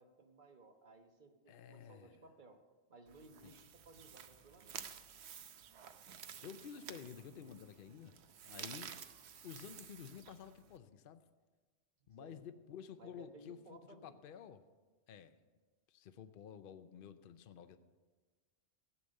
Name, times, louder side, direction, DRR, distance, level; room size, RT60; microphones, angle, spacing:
voice 1, 0.0-2.6 2.9-4.8 8.6-9.0 12.2-12.4 13.0-14.2, right 3 dB, 40° right, 5 dB, 1.3 m, -59 dB
voice 2, 1.5-2.2 3.4-3.6 6.4-8.2 8.4-9.0 9.4-11.2 12.1-14.6 15.1-15.4 15.9-17.8, left 8 dB, 55° left, 10 dB, 0.8 m, -52 dB
sound 1, 3.1-10.8, right 8 dB, 65° right, 1.0 m, -52 dB
14.5 x 8.5 x 6.5 m, 1.4 s
omnidirectional pair, 1.2 m